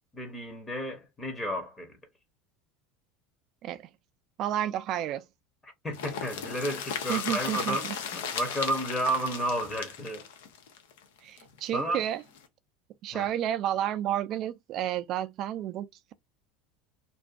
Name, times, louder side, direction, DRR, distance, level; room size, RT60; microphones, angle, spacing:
voice 1, 0.1-2.0 5.6-10.3 11.7-12.0 13.1-13.3, right 1 dB, 15° left, 0.8 m, -32 dB
voice 2, 4.4-5.2 7.1-7.9 11.2-12.2 13.0-16.1, right 11 dB, 45° right, 0.3 m, -31 dB
sound 1, 5.9-11.7 12.0-12.1 12.4-12.5, left 7 dB, 90° left, 0.7 m, -36 dB
2.5 x 2.3 x 2.4 m
supercardioid pair, 145°, 0 cm